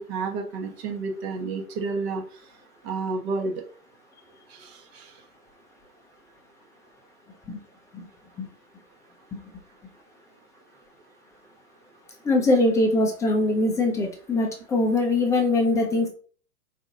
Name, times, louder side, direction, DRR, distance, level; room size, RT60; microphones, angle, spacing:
voice 1, 0.0-2.2 2.8-3.5 4.5-5.1, right 4 dB, 40° right, 3 dB, 1.1 m, -30 dB
voice 2, 12.2-16.1, left 2 dB, 5° left, 1 dB, 0.5 m, -22 dB
4.1 x 2.9 x 3.8 m, 0.42 s
hypercardioid pair, 120°, 48 cm